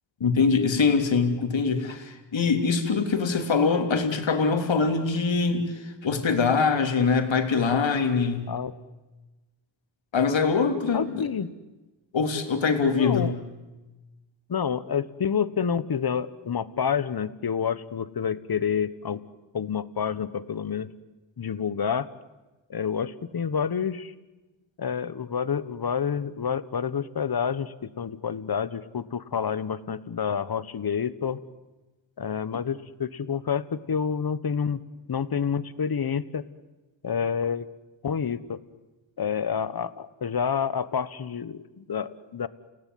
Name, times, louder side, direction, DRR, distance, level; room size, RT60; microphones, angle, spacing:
voice 1, 0.2-8.5 10.1-11.3 12.1-13.3, left 5 dB, 70° left, 5 dB, 3.3 m, -23 dB
voice 2, 10.9-11.5 12.9-13.3 14.5-19.2 19.5-20.9 21.4-22.1 22.7-24.1 24.8-31.4 32.2-34.8 35.1-36.4 37.0-37.7 38.0-38.6 39.2-42.5, left 7 dB, 50° left, 15 dB, 1.3 m, -28 dB
30.0 x 17.5 x 9.5 m, 1.1 s
cardioid pair, 70°, 48 cm